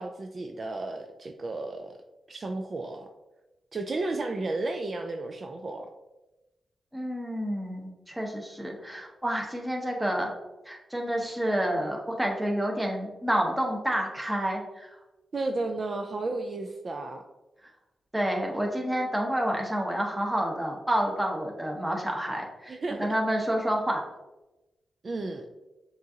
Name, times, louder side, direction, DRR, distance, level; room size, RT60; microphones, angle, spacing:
voice 1, 0.0-2.0 2.3-3.1 3.7-5.9 15.3-17.2 22.7-23.2 25.0-25.5, right 2 dB, 45° right, 4 dB, 0.3 m, -33 dB
voice 2, 6.9-10.3 10.7-14.9 18.1-24.0, equal, 10° right, 0 dB, 0.9 m, -29 dB
6.6 x 2.5 x 2.7 m, 1.0 s
cardioid pair, 85°, 0 cm